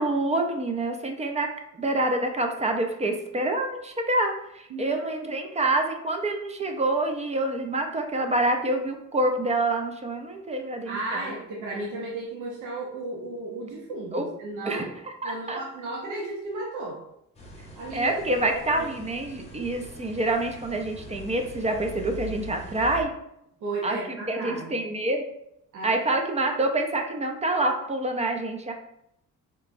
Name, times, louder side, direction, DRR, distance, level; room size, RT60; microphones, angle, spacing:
voice 1, 0.0-1.5 1.8-11.3 14.1-14.3 14.6-15.6 17.9-23.1 23.8-25.2 25.8-28.7, right 2 dB, 20° right, 4 dB, 0.4 m, -27 dB
voice 2, 4.7-5.3 10.9-14.9 15.2-17.0 17.7-18.9 23.6-24.7 25.7-25.9, right 2 dB, 75° right, -4 dB, 0.7 m, -34 dB
sound 1, 17.3-23.0, right 2 dB, 20° left, 0.8 m, -42 dB
3.4 x 3.0 x 2.5 m, 0.78 s
cardioid pair, 90°, 30 cm